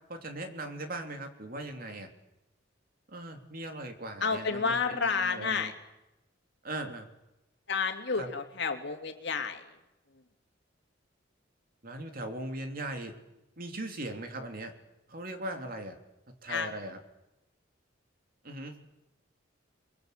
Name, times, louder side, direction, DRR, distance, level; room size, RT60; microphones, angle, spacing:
voice 1, 0.1-2.1 3.1-5.7 6.6-7.1 8.2-8.3 11.8-13.1 13.6-14.7 15.1-16.0 16.3-17.0 18.4-18.7, right 1 dB, 50° right, 5 dB, 3.2 m, -39 dB
voice 2, 4.2-5.7 7.7-9.7 16.5-16.7, left 5 dB, 65° left, 5 dB, 2.9 m, -30 dB
30.0 x 22.0 x 8.2 m, 0.95 s
head